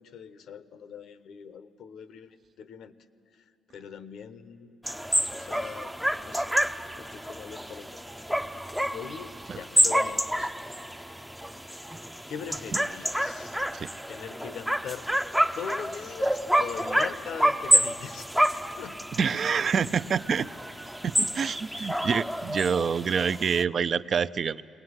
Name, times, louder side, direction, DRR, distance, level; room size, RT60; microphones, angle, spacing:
voice 1, 0.0-2.9 3.3-3.4 3.7-4.8 5.3-5.9 6.2-6.6 6.9-8.0 8.5-10.5 12.3-13.6 14.1-15.1 15.5-18.3 18.8-19.0 21.8-22.1, left 7 dB, 75° left, 12 dB, 1.0 m, -41 dB
sound 1, 4.9-23.6, equal, 5° right, 0.5 m, -28 dB
voice 2, 19.2-20.5 21.0-24.6, right 6 dB, 50° right, 14 dB, 0.5 m, -27 dB
21.5 x 19.0 x 9.7 m, 2.5 s
cardioid pair, 90°, 0 cm